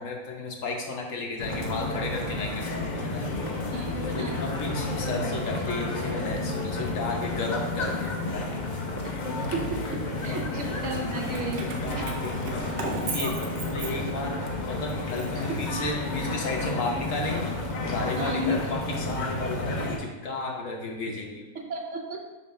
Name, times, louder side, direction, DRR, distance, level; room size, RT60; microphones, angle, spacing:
voice 1, 0.0-3.3 4.1-8.5 10.2-10.8 11.6-14.4 14.7-17.6 17.9-21.4, left 2 dB, 65° left, 0 dB, 1.2 m, -33 dB
sound 1, 1.4-20.0, left 2 dB, 45° left, 0.6 m, -31 dB
voice 2, 3.7-4.5 6.8-6.9 9.0-9.1 9.5-12.2 15.4-15.6 18.1-18.6 21.7-22.2, right 1 dB, 60° right, 1 dB, 1.0 m, -33 dB
Keys jangling, 11.3-14.4 14.9-16.2, right 4 dB, 90° right, 1.2 m, -37 dB
7.0 x 2.5 x 5.4 m, 1.1 s
omnidirectional pair, 1.5 m